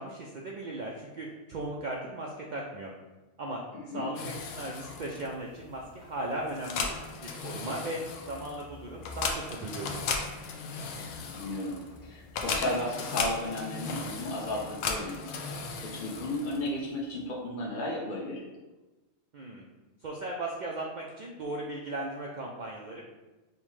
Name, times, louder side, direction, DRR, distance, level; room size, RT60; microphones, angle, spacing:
voice 1, 0.0-2.9 3.4-3.6 3.9-6.9 7.2-10.0 19.3-19.7 20.0-23.0, right 1 dB, 85° right, -2 dB, 0.4 m, -37 dB
voice 2, 3.7-4.1 11.3-15.6 15.9-18.4, left 1 dB, 50° left, -5 dB, 0.7 m, -34 dB
sound 1, 4.2-16.9, left 4 dB, 80° left, 0.9 m, -37 dB
5.5 x 2.1 x 3.1 m, 1.1 s
omnidirectional pair, 1.3 m